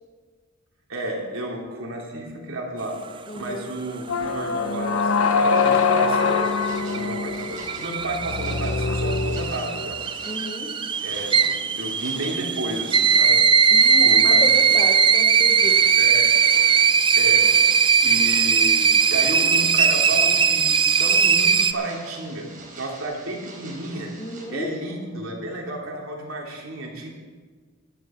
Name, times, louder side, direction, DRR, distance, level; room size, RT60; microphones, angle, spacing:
voice 1, 0.9-3.0 3.3-10.0 11.0-11.4 11.7-13.4 14.0-14.8 16.0-16.3 17.2-24.1 24.5-27.1, right 1 dB, 75° right, -1 dB, 3.0 m, -32 dB
voice 2, 3.3-3.7 10.3-10.7 13.7-15.8 24.2-24.7, left 1 dB, 25° left, 1 dB, 1.0 m, -32 dB
sound 1, 4.1-10.1, left 5 dB, 80° left, 0.8 m, -24 dB
sound 2, 5.5-21.7, right 6 dB, 25° right, 0.4 m, -19 dB
sound 3, 5.5-24.5, right 2 dB, 40° right, 3.6 m, -45 dB
15.0 x 12.0 x 4.4 m, 1.4 s
head